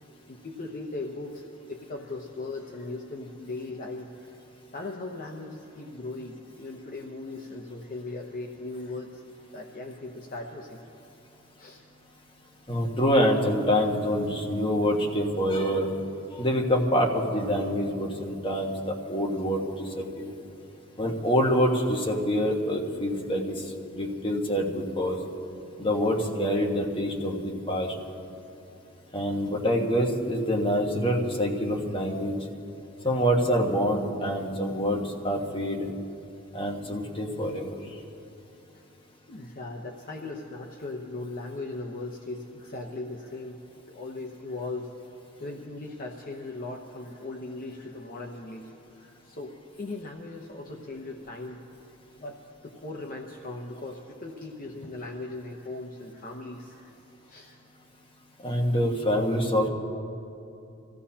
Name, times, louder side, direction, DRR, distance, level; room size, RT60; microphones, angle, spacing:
voice 1, 0.3-4.3 4.7-9.2 9.5-10.8 11.6-11.8 39.3-43.6 43.9-44.9 45.4-48.7 49.0-51.6 52.1-52.4 52.6-57.0 57.3-57.6 58.6-58.7, left 2 dB, 45° left, 1 dB, 0.9 m, -38 dB
voice 2, 12.7-15.9 16.4-20.3 21.0-23.5 23.9-25.2 25.8-27.9 29.1-32.3 33.0-35.9 36.5-37.7 58.4-59.7, equal, 25° left, -1 dB, 1.4 m, -26 dB
25.5 x 15.5 x 2.9 m, 2.8 s
head